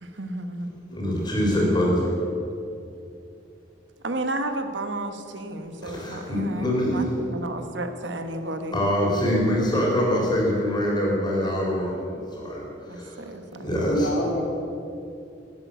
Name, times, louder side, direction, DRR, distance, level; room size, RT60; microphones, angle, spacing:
voice 1, 0.0-0.7 4.0-8.9 12.9-13.9, right 1 dB, 70° right, 8 dB, 1.1 m, -32 dB
voice 2, 0.9-2.0 5.8-7.1 8.7-13.2 13.6-14.1, equal, 25° left, -3 dB, 3.9 m, -24 dB
voice 3, 13.9-14.4, equal, 90° left, -1 dB, 3.0 m, -27 dB
12.5 x 9.2 x 8.0 m, 2.6 s
head